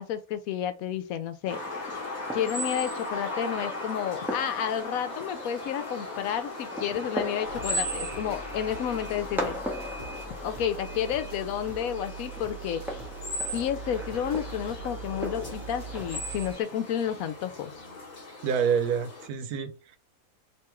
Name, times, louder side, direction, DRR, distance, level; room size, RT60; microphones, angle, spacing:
voice 1, 0.0-1.6 2.3-9.6 10.4-12.8 13.5-17.7, left 9 dB, 75° left, 1.0 m, -31 dB
Fireworks, 1.4-16.6, equal, ahead, 0.6 m, -40 dB
sound 1, 1.5-19.3, left 1 dB, 35° left, 1.0 m, -38 dB
sound 2, 7.4-16.5, right 5 dB, 40° right, 1.1 m, -42 dB
voice 2, 18.4-20.0, right 7 dB, 85° right, 1.2 m, -27 dB
3.4 x 2.9 x 3.0 m
omnidirectional pair, 1.6 m